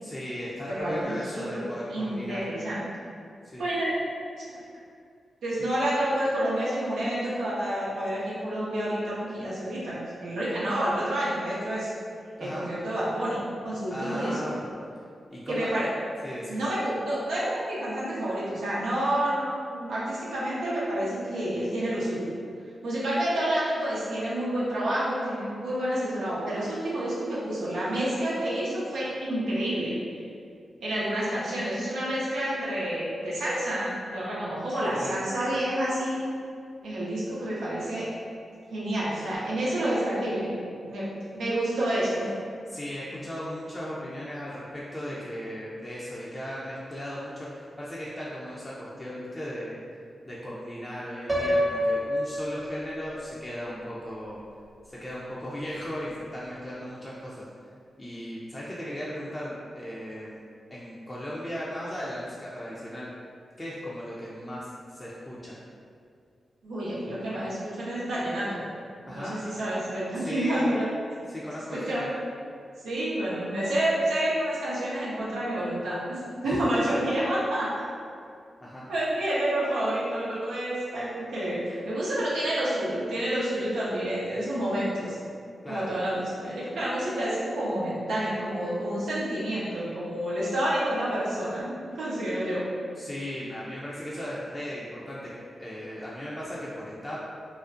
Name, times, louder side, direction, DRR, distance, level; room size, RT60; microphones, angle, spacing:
voice 1, 0.0-2.4 3.4-3.7 4.6-4.7 12.4-12.7 13.9-14.6 15.3-15.7 16.2-16.6 34.9-35.2 42.6-49.8 50.2-54.4 54.8-57.5 58.0-60.4 60.7-63.1 63.6-65.6 69.1-69.4 70.1-70.7 71.3-72.1 76.4-77.2 78.6-78.9 85.6-86.0 93.0-95.3 95.6-97.2, equal, 20° left, -7 dB, 0.4 m, -37 dB
voice 2, 0.7-1.4 1.9-2.8 3.6-4.0 5.4-11.9 12.4-14.5 15.5-15.9 16.5-22.3 22.8-29.9 30.8-36.3 36.8-38.1 38.7-40.5 40.8-41.1 41.3-42.3 66.6-68.5 69.1-70.9 71.7-72.1 72.8-77.8 78.9-85.2 85.7-92.6, right 1 dB, 90° right, -9 dB, 0.6 m, -29 dB
Piano, 51.3-53.3, equal, 35° right, 0.5 m, -27 dB
2.4 x 2.0 x 2.5 m, 2.3 s
cardioid pair, 45°, 0 cm